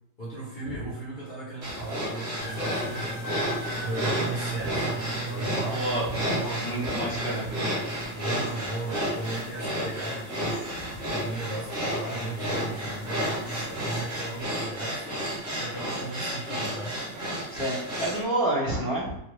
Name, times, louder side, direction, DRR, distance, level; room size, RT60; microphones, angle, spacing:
voice 1, 0.2-3.1 3.8-5.8 8.1-10.8 11.1-15.2 15.6-17.0, right 2 dB, 75° left, -9 dB, 0.4 m, -37 dB
sound 1, 1.6-18.2, equal, 45° right, 0.9 m, -32 dB
sound 2, 2.4-14.4, right 2 dB, 55° left, 0.8 m, -38 dB
voice 2, 5.7-6.0 6.4-7.5 17.5-19.2, right 1 dB, 25° left, -6 dB, 0.8 m, -29 dB
2.9 x 2.4 x 3.1 m, 0.85 s
omnidirectional pair, 2.0 m